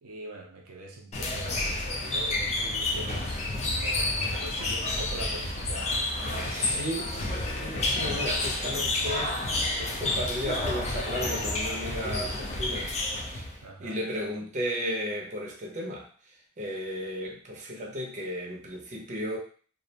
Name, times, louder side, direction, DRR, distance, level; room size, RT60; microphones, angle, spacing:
voice 1, 0.0-3.4 3.8-6.9 13.6-14.0, right 2 dB, 80° right, 0 dB, 0.5 m, -43 dB
sound 1, 1.1-13.6, left 2 dB, 30° left, 0.4 m, -30 dB
voice 2, 6.3-12.9 13.3-13.5 13.8-16.1 16.6-19.4, equal, 35° right, -2 dB, 0.6 m, -34 dB
2.4 x 2.0 x 2.8 m, 0.43 s
head